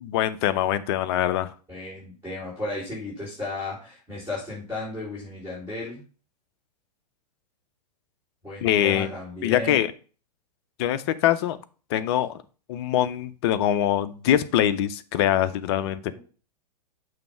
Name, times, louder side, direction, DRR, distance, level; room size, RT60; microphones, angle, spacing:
voice 1, 0.0-1.5 8.6-9.1 9.4-9.9 10.8-11.6 11.9-12.3 12.7-16.0, left 11 dB, 40° left, 12 dB, 0.5 m, -23 dB
voice 2, 1.7-6.0 8.4-9.8 16.0-16.2, left 2 dB, 10° right, -9 dB, 3.8 m, -34 dB
6.9 x 3.2 x 5.6 m, 0.37 s
figure-of-eight pair, 105°, 21 cm